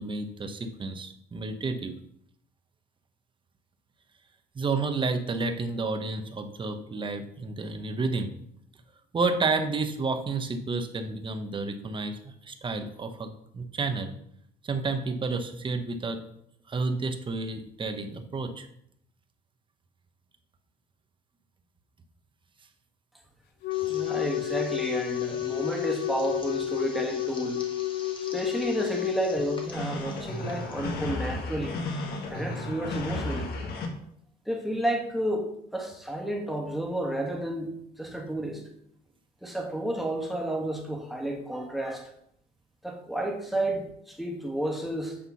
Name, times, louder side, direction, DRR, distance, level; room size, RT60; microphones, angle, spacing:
voice 1, 0.0-1.9 4.5-8.3 9.1-14.1 14.6-16.2 16.7-18.7, right 3 dB, 30° right, 7 dB, 0.9 m, -30 dB
Wind instrument woodwind instrument, 23.6-29.7, left 14 dB, 85° left, 0.8 m, -31 dB
sound 1, 23.7-31.0, left 3 dB, 30° left, 1.3 m, -47 dB
voice 2, 23.8-27.6 28.3-31.8 32.3-33.5 34.4-38.6 39.4-42.1 42.8-45.2, right 1 dB, ahead, 0 dB, 1.6 m, -31 dB
sound 2, 29.7-33.9, left 2 dB, 70° left, 1.5 m, -33 dB
8.5 x 3.7 x 5.6 m, 0.72 s
cardioid pair, 110°, 17 cm